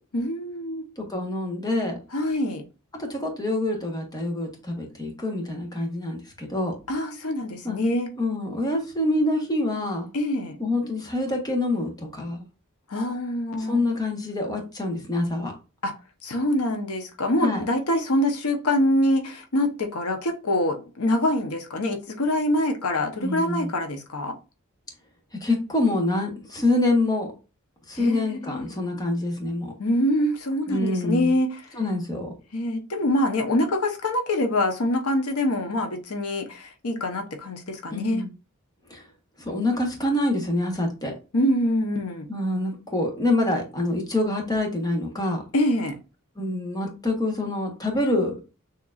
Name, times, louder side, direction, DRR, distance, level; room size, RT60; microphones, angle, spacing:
voice 1, 0.1-0.9 2.1-2.6 6.9-8.1 10.1-10.6 12.9-13.8 15.8-15.9 16.2-24.4 28.0-28.7 29.8-31.6 32.5-38.2 41.3-42.3 45.5-46.0, left 1 dB, 85° left, 0.9 m, -25 dB
voice 2, 1.0-2.0 2.9-6.7 7.6-7.8 8.2-10.1 10.6-12.4 13.6-15.5 17.4-17.6 23.2-23.7 25.4-27.3 27.9-29.7 30.7-31.3 31.7-32.4 37.9-38.3 38.9-39.1 39.4-41.1 42.3-45.4 46.4-48.4, left 2 dB, 20° left, 1.2 m, -26 dB
6.5 x 3.0 x 2.4 m
head